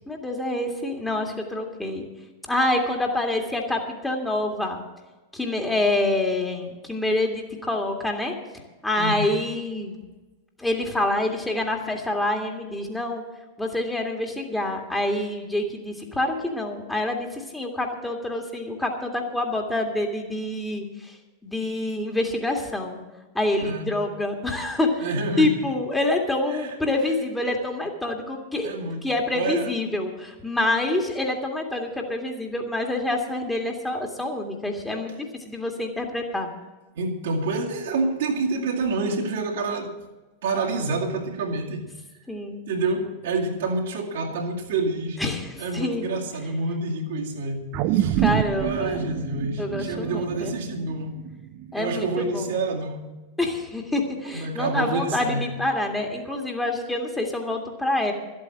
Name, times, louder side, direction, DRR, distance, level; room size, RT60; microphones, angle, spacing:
voice 1, 0.1-2.1 2.5-4.8 5.3-8.3 8.8-10.0 10.6-13.2 13.6-21.1 21.4-23.0 23.3-25.1 25.4-28.7 29.0-36.5 42.3-42.6 45.2-46.1 48.2-49.0 49.6-50.5 51.7-52.6 53.4-58.1, left 2 dB, 5° left, 2.1 m, -26 dB
voice 2, 9.0-9.4 23.6-24.0 25.0-25.6 26.5-26.8 28.6-29.8 36.9-40.0 40.4-41.9 42.7-45.2 45.6-48.2 48.6-51.3 51.7-53.2 54.3-55.5, right 3 dB, 60° right, 2.2 m, -28 dB
sound 1, 47.7-52.2 52.7-52.8, right 12 dB, 45° right, 0.6 m, -27 dB
13.5 x 8.6 x 7.6 m
figure-of-eight pair, 90°, 0 cm